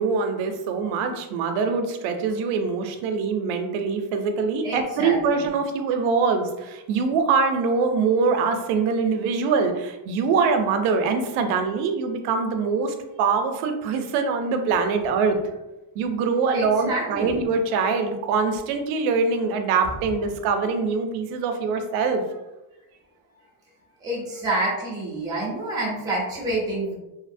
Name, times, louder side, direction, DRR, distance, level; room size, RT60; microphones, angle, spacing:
voice 1, 0.0-15.4 16.0-22.2, right 5 dB, 75° right, 6 dB, 0.5 m, -23 dB
voice 2, 4.6-5.5 16.5-17.4 24.0-26.9, right 2 dB, 10° right, -5 dB, 0.4 m, -28 dB
2.7 x 2.0 x 2.5 m, 0.99 s
cardioid pair, 165°, 48 cm